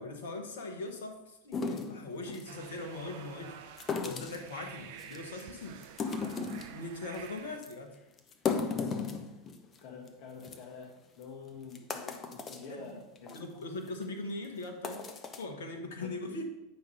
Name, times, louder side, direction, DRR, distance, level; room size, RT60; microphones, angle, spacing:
voice 1, 0.0-3.6 4.0-5.8 6.7-7.9 12.7-13.0 13.3-15.1 15.4-16.5, left 2 dB, 60° left, 5 dB, 1.1 m, -40 dB
sound 1, 1.5-2.5 3.8-4.5 5.0-5.4 5.8-6.8 7.1-7.3 7.6-7.7 8.2-9.8 10.1-10.2 10.4-10.6 11.2-11.3 11.7-12.7 13.2-13.4 13.9-14.0 14.6-15.4, left 5 dB, 25° left, 0.7 m, -35 dB
sound 2, 2.5-7.6, right 8 dB, 50° right, 0.6 m, -49 dB
voice 2, 8.7-9.4 9.8-10.9 11.2-13.4 16.0-16.1, left 4 dB, 45° left, 0 dB, 1.2 m, -47 dB
9.3 x 5.2 x 3.3 m, 0.92 s
figure-of-eight pair, 85°, 0 cm